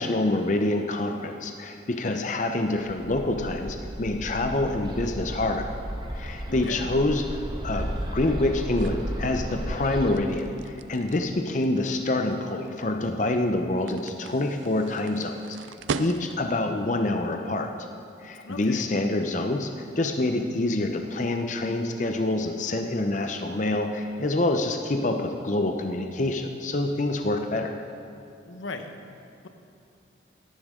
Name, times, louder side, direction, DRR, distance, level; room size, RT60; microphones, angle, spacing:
voice 1, 0.0-5.7 6.1-15.6 16.0-17.7 18.2-19.7 20.0-27.8, left 2 dB, 40° left, 5 dB, 0.6 m, -26 dB
Bird, 3.0-10.1, equal, 25° right, 1.1 m, -34 dB
sound 1, 6.2-16.6, right 5 dB, 85° right, 0.5 m, -40 dB
voice 2, 6.5-6.9 18.4-18.9 28.5-29.5, left 3 dB, 90° left, 7 dB, 0.9 m, -39 dB
17.0 x 11.5 x 3.7 m, 2.6 s
head